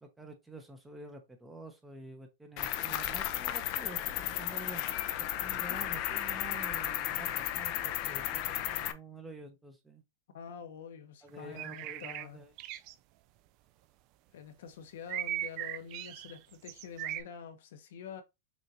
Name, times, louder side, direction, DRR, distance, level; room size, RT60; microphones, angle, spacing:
voice 1, 0.0-4.8 5.4-10.0 11.2-12.5, right 2 dB, 5° right, 0.8 m, -48 dB
Cricket, 2.6-8.9, left 13 dB, 40° left, 0.5 m, -34 dB
voice 2, 10.3-12.4 14.3-18.2, left 7 dB, 70° left, 0.9 m, -46 dB
sound 1, 11.4-12.3 12.6-12.9 15.1-16.4 16.7-17.2, right 13 dB, 40° right, 0.3 m, -38 dB
6.1 x 2.5 x 2.8 m
supercardioid pair, 150°, 0 cm